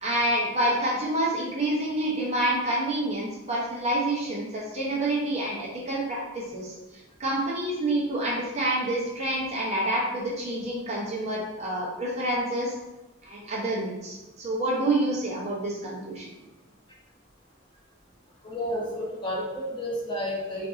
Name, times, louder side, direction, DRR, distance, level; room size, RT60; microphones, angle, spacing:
voice 1, 0.0-6.7 7.2-12.7 13.2-16.3, right 1 dB, 30° right, -4 dB, 0.6 m, -28 dB
voice 2, 18.4-20.7, equal, 25° left, -5 dB, 0.7 m, -31 dB
3.8 x 2.6 x 2.4 m, 1.0 s
head